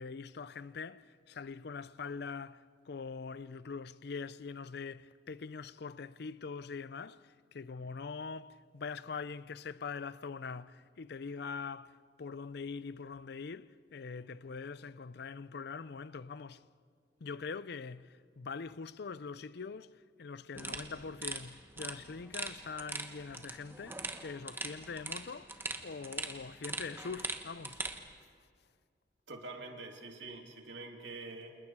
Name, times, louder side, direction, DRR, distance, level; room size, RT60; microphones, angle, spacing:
voice 1, 0.0-16.6 17.2-27.8, left 5 dB, 65° left, 0.5 m, -43 dB
sound 1, 20.6-28.0, right 3 dB, 15° right, 1.3 m, -42 dB
voice 2, 29.3-31.6, right 3 dB, 80° right, 3.0 m, -45 dB
30.0 x 28.0 x 4.7 m
head